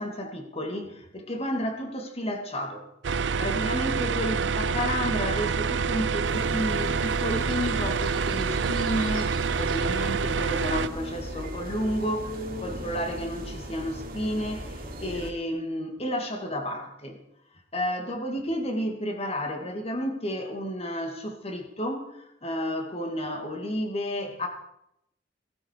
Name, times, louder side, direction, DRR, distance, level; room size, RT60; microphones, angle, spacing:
voice 1, 0.0-2.8 3.4-17.2 17.7-24.5, equal, 35° left, 2.6 m, -31 dB
sound 1, 3.0-10.9, right 5 dB, 75° right, 0.6 m, -27 dB
sound 2, 6.2-15.3, equal, 55° right, 2.9 m, -37 dB
18.5 x 12.0 x 4.9 m
head